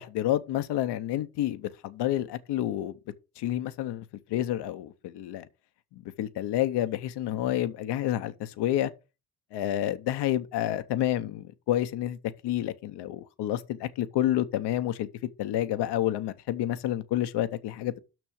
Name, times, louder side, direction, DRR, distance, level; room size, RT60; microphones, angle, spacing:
voice 1, 0.0-3.0 3.4-5.5 5.9-8.9 9.5-12.2 12.4-15.1 15.4-18.0, left 12 dB, 85° left, 0.8 m, -29 dB
6.2 x 6.2 x 6.4 m
cardioid pair, 65°, 40 cm